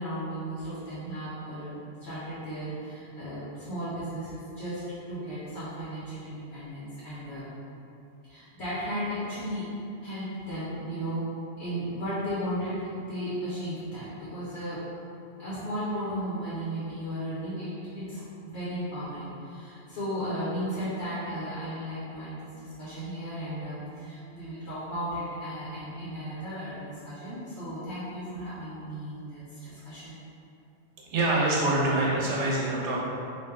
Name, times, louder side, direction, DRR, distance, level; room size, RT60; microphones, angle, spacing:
voice 1, 0.0-4.8 5.1-7.4 8.2-9.7 10.0-11.3 11.6-14.8 15.4-18.2 18.4-30.2, equal, 70° left, -11 dB, 1.2 m, -35 dB
voice 2, 31.1-33.0, right 2 dB, 80° right, -4 dB, 1.0 m, -25 dB
3.3 x 2.8 x 3.5 m, 2.7 s
omnidirectional pair, 1.2 m